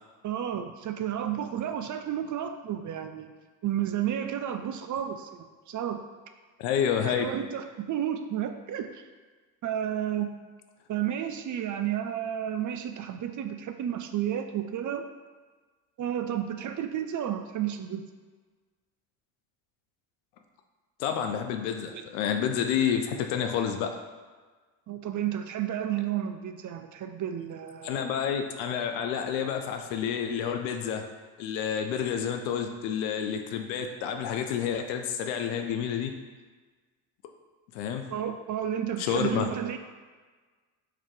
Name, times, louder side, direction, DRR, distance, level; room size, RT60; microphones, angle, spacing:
voice 1, 0.2-3.3 3.6-6.0 7.1-9.0 9.6-10.3 10.9-15.1 16.0-18.0 21.9-22.0 24.9-28.1 38.1-39.8, right 10 dB, 40° right, 8 dB, 0.4 m, -32 dB
voice 2, 6.6-7.3 21.0-23.9 27.8-31.0 31.4-36.1 37.7-38.0 39.0-39.5, left 8 dB, 85° left, 5 dB, 0.6 m, -29 dB
4.6 x 3.0 x 3.7 m, 1.4 s
hypercardioid pair, 55°, 48 cm